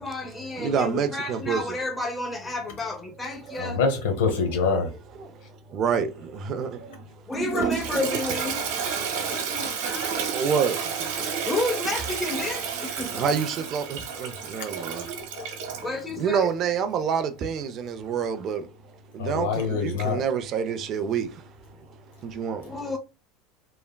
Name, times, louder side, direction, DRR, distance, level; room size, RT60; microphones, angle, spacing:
voice 1, 0.0-3.8 7.3-8.6 11.4-13.3 15.8-16.5 22.6-23.0, left 2 dB, 15° left, 0.6 m, -31 dB
voice 2, 0.6-1.6 5.2-5.3 5.7-6.8 10.3-10.8 13.0-15.0 16.1-18.7 19.1-21.3 22.2-22.6, right 7 dB, 45° right, 0.4 m, -27 dB
voice 3, 3.5-4.9 15.3-15.5 19.2-20.2, left 4 dB, 80° left, 0.9 m, -25 dB
voice 4, 6.7-7.2 8.8-10.2 21.7-21.9, left 3 dB, 50° left, 1.2 m, -43 dB
Toilet flush, 7.3-15.9, right 6 dB, 75° right, 1.0 m, -30 dB
3.2 x 2.0 x 2.2 m
supercardioid pair, 110°, 0 cm